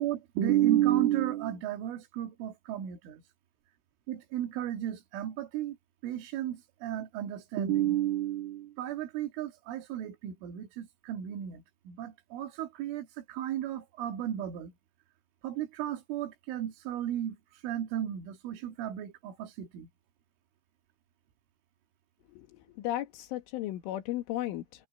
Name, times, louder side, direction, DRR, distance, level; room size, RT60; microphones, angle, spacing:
voice 1, 0.0-3.2 4.1-5.8 6.0-14.7 15.4-17.4 17.6-19.9, right 12 dB, 85° right, 4.3 m, -32 dB
voice 2, 22.3-24.9, left 14 dB, 90° left, 4.2 m, -35 dB
omnidirectional pair, 5.5 m